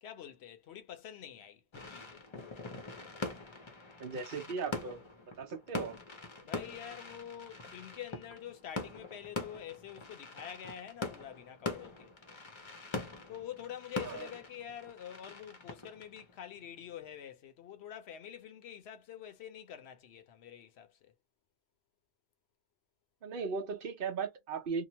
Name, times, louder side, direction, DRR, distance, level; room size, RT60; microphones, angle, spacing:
voice 1, 0.0-2.2 6.4-12.1 13.3-21.1, left 10 dB, 85° left, 0.9 m, -47 dB
sound 1, 1.7-17.1, left 3 dB, 35° left, 0.6 m, -43 dB
voice 2, 4.0-5.0 5.4-6.0 14.0-14.3 23.2-24.8, right 5 dB, 60° right, 0.8 m, -37 dB
2.9 x 2.1 x 2.7 m
omnidirectional pair, 1.1 m